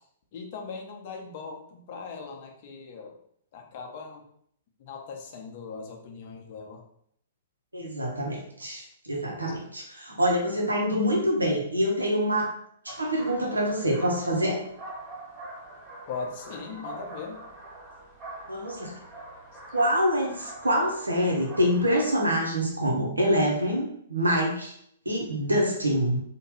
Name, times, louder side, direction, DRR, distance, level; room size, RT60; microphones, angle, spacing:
voice 1, 0.3-3.1 3.5-4.2 4.8-6.8 8.6-8.7 16.1-17.4 19.5-19.6, left 5 dB, 45° left, 1 dB, 0.6 m, -39 dB
voice 2, 7.7-12.5 12.8-14.6 18.5-18.9 19.7-24.7 25.0-26.2, equal, 85° right, 0 dB, 0.8 m, -26 dB
sound 1, 12.9-22.2, right 2 dB, 25° right, 0.7 m, -44 dB
2.8 x 2.2 x 3.1 m, 0.68 s
figure-of-eight pair, 115°, 0 cm